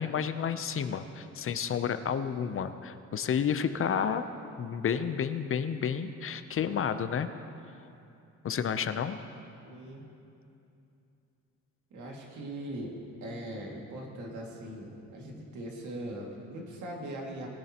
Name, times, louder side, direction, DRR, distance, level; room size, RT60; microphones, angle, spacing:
voice 1, 0.0-4.2 4.6-7.3 8.4-9.2, left 7 dB, 45° left, 11 dB, 0.6 m, -31 dB
voice 2, 9.6-10.0 11.9-13.0 13.2-17.5, right 1 dB, 75° right, -1 dB, 2.2 m, -40 dB
20.0 x 10.5 x 2.9 m, 2.7 s
cardioid pair, 90°, 30 cm